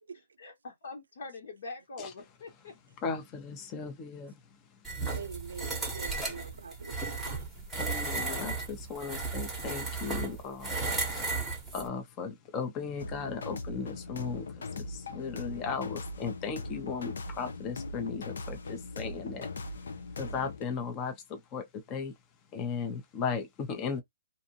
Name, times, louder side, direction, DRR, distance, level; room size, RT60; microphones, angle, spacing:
voice 1, 0.4-2.7, left 3 dB, 60° left, 1.5 m, -43 dB
voice 2, 3.0-4.4 7.7-11.4 11.7-19.9 20.2-22.1 22.5-24.0, left 5 dB, 25° left, 0.7 m, -37 dB
sound 1, 4.8-11.9, right 3 dB, ahead, 1.1 m, -34 dB
voice 3, 5.1-7.4, right 5 dB, 80° right, 0.5 m, -44 dB
sound 2, 13.0-20.6, left 3 dB, 75° left, 0.6 m, -40 dB
2.6 x 2.5 x 2.8 m
hypercardioid pair, 150°, 0 cm